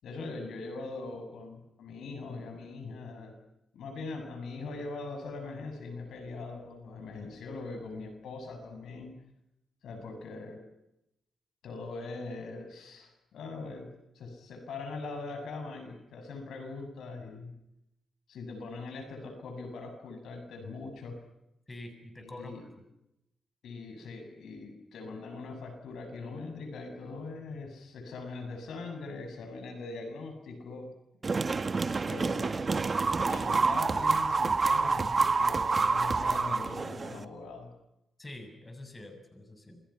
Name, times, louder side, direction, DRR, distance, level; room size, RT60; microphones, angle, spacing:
voice 1, 0.0-3.3 3.7-9.1 9.8-10.6 11.6-13.9 14.1-17.5 18.3-21.2 22.2-22.6 23.6-30.9 32.0-32.7 33.3-37.7, left 3 dB, 85° left, 6 dB, 7.7 m, -41 dB
voice 2, 21.7-22.5 38.2-39.8, left 1 dB, 20° left, 6 dB, 7.0 m, -46 dB
sound 1, 31.2-37.2, right 4 dB, 35° right, 1.6 m, -28 dB
30.0 x 27.5 x 5.9 m, 0.86 s
cardioid pair, 90°, 0 cm